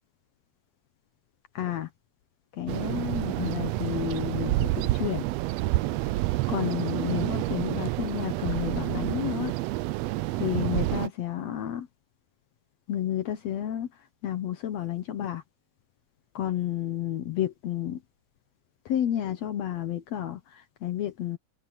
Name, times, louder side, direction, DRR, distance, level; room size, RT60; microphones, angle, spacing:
voice 1, 1.6-1.9 2.6-5.2 6.5-9.5 10.4-11.9 12.9-13.9 14.2-15.4 16.4-18.0 18.9-20.4 20.8-21.4, left 11 dB, 65° left, 2.0 m, -31 dB
sound 1, 2.7-11.1, right 18 dB, 80° right, 1.5 m, -29 dB
open air
omnidirectional pair, 3.4 m